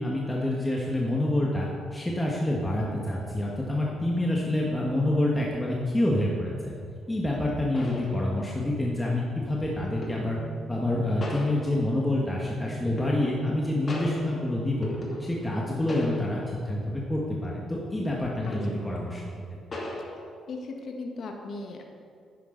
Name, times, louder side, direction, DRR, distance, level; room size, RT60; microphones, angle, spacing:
voice 1, 0.0-6.7 7.1-10.4 10.7-14.9 15.2-19.2 19.5-19.6, left 1 dB, 15° left, -3 dB, 1.4 m, -27 dB
sound 1, 7.1-7.2 7.7-8.7 10.0-10.5 11.2-12.1 13.0-13.6 13.9-15.6 15.9-16.6 17.0-17.2 18.5-19.0 19.7-20.2, left 1 dB, 35° left, 2.0 m, -38 dB
sound 2, 9.6-15.5, right 3 dB, 80° right, 1.7 m, -42 dB
voice 2, 20.5-21.8, left 3 dB, 60° left, 2 dB, 1.3 m, -37 dB
10.0 x 9.4 x 3.9 m, 2.2 s
cardioid pair, 90°, 0 cm